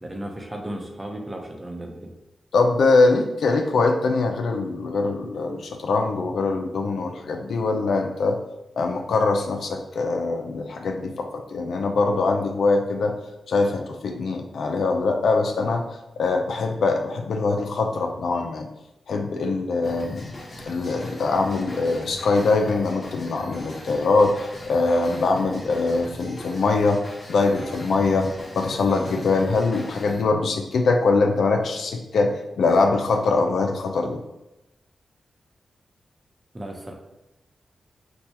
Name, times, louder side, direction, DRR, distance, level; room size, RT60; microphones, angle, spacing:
voice 1, 0.0-2.1 36.5-36.9, right 1 dB, 20° right, 1 dB, 0.7 m, -35 dB
voice 2, 2.5-8.4 8.8-13.1 13.5-15.8 16.2-18.7 19.1-20.3 20.7-27.0 27.3-34.2, left 3 dB, 80° left, 4 dB, 0.4 m, -22 dB
sound 1, 19.8-30.2, left 1 dB, 55° left, 0.9 m, -40 dB
4.5 x 2.2 x 2.8 m, 0.94 s
cardioid pair, 55°, 0 cm